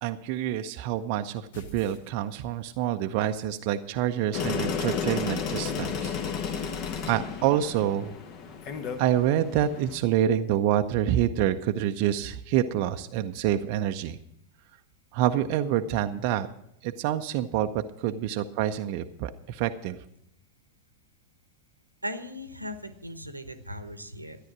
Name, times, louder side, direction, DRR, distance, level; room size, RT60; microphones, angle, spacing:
voice 1, 0.0-6.1 6.5-6.7 7.1-8.2 9.0-14.2 15.1-16.5 16.8-17.7 18.0-20.0, right 11 dB, 45° right, 7 dB, 0.6 m, -27 dB
sound 1, 1.5-2.8, left 1 dB, 60° left, 1.4 m, -47 dB
sound 2, 4.3-10.0, left 6 dB, 40° left, 1.2 m, -32 dB
voice 2, 22.0-24.4, equal, 85° right, 11 dB, 1.0 m, -38 dB
13.0 x 10.0 x 6.0 m, 0.75 s
figure-of-eight pair, 90°, 0 cm